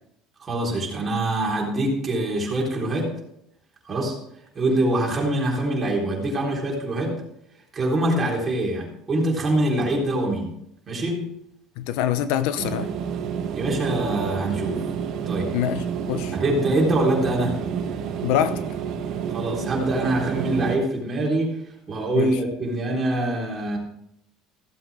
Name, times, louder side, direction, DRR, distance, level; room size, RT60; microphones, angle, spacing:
voice 1, 0.4-3.1 3.9-4.2 4.5-7.2 7.7-10.5 10.9-11.3 13.5-14.9 15.3-15.5 16.3-17.6 19.3-21.6 21.9-23.8, right 1 dB, 25° right, -2 dB, 4.0 m, -24 dB
voice 2, 11.8-12.9 15.5-16.4 18.2-18.6 22.1-22.4, left 10 dB, 80° left, 12 dB, 0.8 m, -25 dB
sound 1, 12.6-20.8, right 7 dB, 55° right, 1.3 m, -29 dB
15.5 x 7.8 x 3.7 m, 0.76 s
cardioid pair, 130°, 0 cm